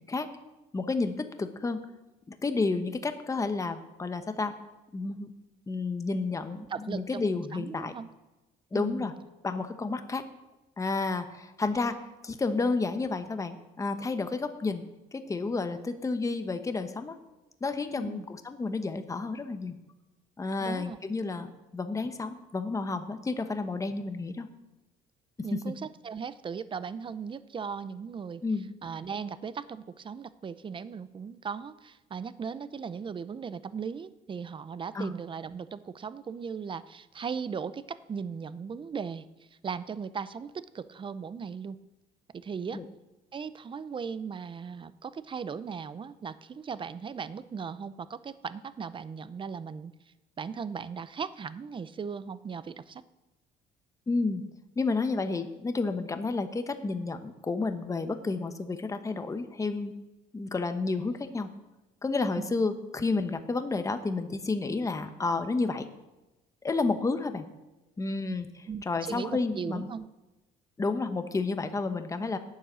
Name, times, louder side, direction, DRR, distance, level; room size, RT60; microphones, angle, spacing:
voice 1, 0.7-1.8 2.3-4.5 4.9-5.3 5.7-7.9 8.7-9.1 9.4-10.2 10.8-14.8 15.1-17.2 17.6-19.8 20.4-24.5 25.5-25.6 28.4-28.7 34.9-35.1 42.7-42.9 54.1-54.5 54.8-59.9 60.3-61.5 62.0-65.9 66.6-67.5 68.0-69.9 70.8-72.4, left 3 dB, 20° left, 8 dB, 1.0 m, -31 dB
voice 2, 6.7-7.3 7.5-8.1 8.7-9.1 18.0-18.3 20.6-21.0 25.4-28.4 28.8-39.3 39.6-41.8 42.3-42.8 43.3-49.9 50.4-53.0 62.4-62.6 68.7-70.1, right 6 dB, 30° right, 15 dB, 0.6 m, -37 dB
12.0 x 6.5 x 8.9 m, 1.1 s
cardioid pair, 110°, 17 cm